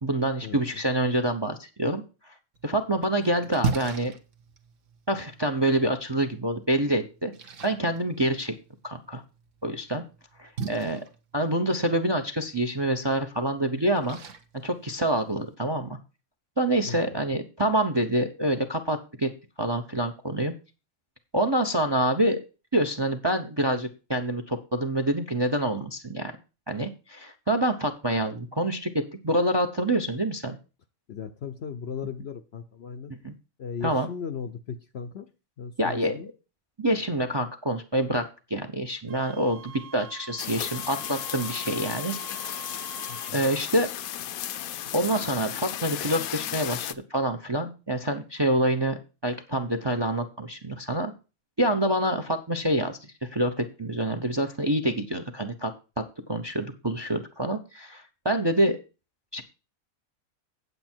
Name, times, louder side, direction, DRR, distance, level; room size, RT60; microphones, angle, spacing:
voice 1, 0.0-2.3 2.6-4.1 5.1-7.3 7.6-8.5 8.8-9.2 9.6-10.0 10.4-11.0 11.3-14.2 14.6-16.0 16.6-19.3 19.6-20.5 21.3-22.4 22.7-26.3 26.7-30.6 33.2-33.3 33.8-34.1 35.8-36.2 36.8-42.7 43.3-43.9 44.9-49.0 49.2-51.1 51.6-53.0 53.3-55.7 56.0-56.1 56.3-58.8 59.3-59.4, right 1 dB, 25° right, 9 dB, 0.6 m, -26 dB
Splash splatter, 2.5-15.5, right 5 dB, 60° right, 1.3 m, -39 dB
voice 2, 16.8-17.2 31.1-33.1 33.6-35.3 35.6-36.3 43.1-43.4, left 6 dB, 55° left, 9 dB, 0.8 m, -37 dB
Wind instrument woodwind instrument, 39.1-43.4, right 6 dB, 80° right, 1.2 m, -44 dB
sound 1, 40.4-46.9, left 11 dB, 80° left, 1.1 m, -34 dB
8.4 x 8.1 x 4.4 m, 0.31 s
omnidirectional pair, 1.5 m